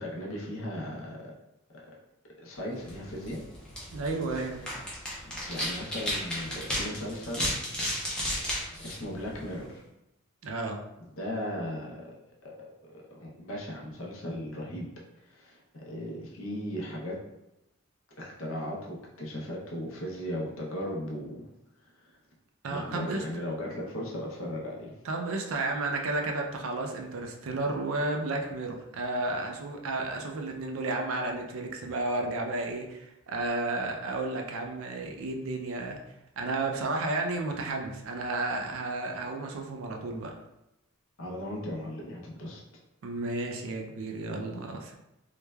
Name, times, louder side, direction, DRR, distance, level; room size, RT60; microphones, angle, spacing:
voice 1, 0.0-1.3 1.7-1.9 2.4-3.4 4.6-4.7 5.5-7.6 8.8-9.9 11.1-12.2 12.4-14.9 15.2-17.2 18.2-21.5 21.8-22.2 22.7-24.9 41.2-42.6, equal, 65° left, -2 dB, 0.6 m, -37 dB
sound 1, 2.8-9.7, equal, 5° left, 0.5 m, -35 dB
voice 2, 3.9-4.7 10.4-10.8 22.6-23.2 25.0-36.0 36.4-40.3 43.0-44.9, right 2 dB, 65° right, 3 dB, 0.4 m, -32 dB
3.1 x 2.1 x 2.2 m, 0.89 s
head